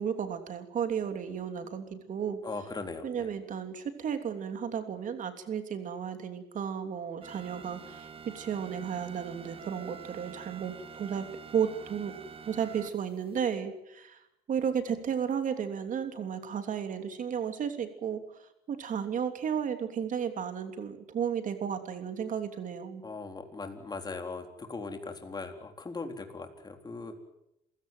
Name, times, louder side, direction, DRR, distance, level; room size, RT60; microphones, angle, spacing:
voice 1, 0.0-2.4 3.0-11.3 11.5-12.1 12.5-18.2 18.7-23.0, right 7 dB, 50° right, 8 dB, 3.2 m, -33 dB
voice 2, 2.4-3.3 23.0-27.2, left 3 dB, 25° left, 5 dB, 3.9 m, -39 dB
sound 1, 7.2-13.4, right 6 dB, 35° right, 1.7 m, -47 dB
27.5 x 16.5 x 9.2 m, 0.84 s
cardioid pair, 110°, 17 cm